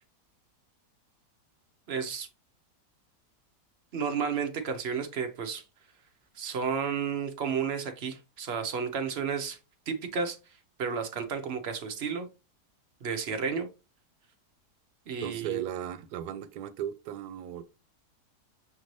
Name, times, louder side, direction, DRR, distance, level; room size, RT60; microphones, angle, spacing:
voice 1, 1.9-2.3 3.9-5.6 6.4-9.6 9.9-10.4 10.8-12.3 13.0-13.7 15.1-15.6, right 6 dB, 50° right, 0.8 m, -32 dB
voice 2, 15.2-17.6, right 10 dB, 80° right, 1.1 m, -36 dB
6.6 x 2.6 x 3.1 m
omnidirectional pair, 1.7 m